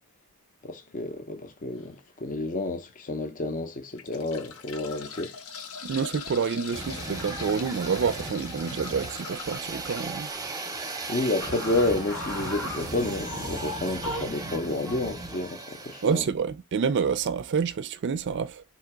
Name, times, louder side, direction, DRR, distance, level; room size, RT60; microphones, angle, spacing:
voice 1, 0.6-5.3 11.1-16.2, left 2 dB, 35° left, 0.6 m, -30 dB
sound 1, 1.8-2.0 2.6-2.7 3.7-10.1 11.7-11.8 12.1-12.2, left 5 dB, 70° left, 0.8 m, -41 dB
voice 2, 5.8-10.3 16.0-18.6, right 6 dB, 55° right, 0.4 m, -28 dB
sound 2, 6.7-16.3, right 3 dB, 15° right, 0.7 m, -37 dB
sound 3, 11.4-14.4, left 1 dB, 85° left, 1.6 m, -36 dB
3.8 x 2.8 x 4.5 m
head